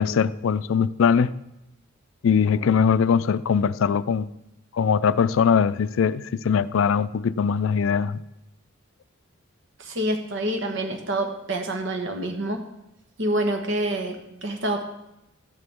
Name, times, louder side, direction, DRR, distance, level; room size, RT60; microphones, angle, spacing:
voice 1, 0.0-1.3 2.2-4.3 4.7-8.2, left 6 dB, 70° left, 16 dB, 0.4 m, -21 dB
voice 2, 9.9-12.6 13.2-14.8, right 1 dB, 65° right, 5 dB, 1.2 m, -27 dB
13.5 x 9.7 x 3.6 m, 0.86 s
head